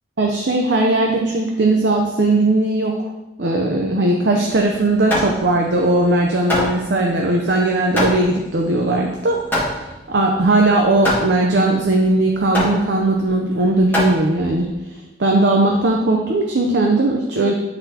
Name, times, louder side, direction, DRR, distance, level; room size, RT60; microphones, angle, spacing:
voice 1, 0.2-3.1 3.4-9.8 10.1-14.7 15.2-17.5, right 2 dB, 65° right, 1 dB, 0.6 m, -18 dB
Hammer, 4.5-14.7, equal, 10° left, 1.8 m, -25 dB
11.5 x 4.1 x 2.8 m, 1.0 s
head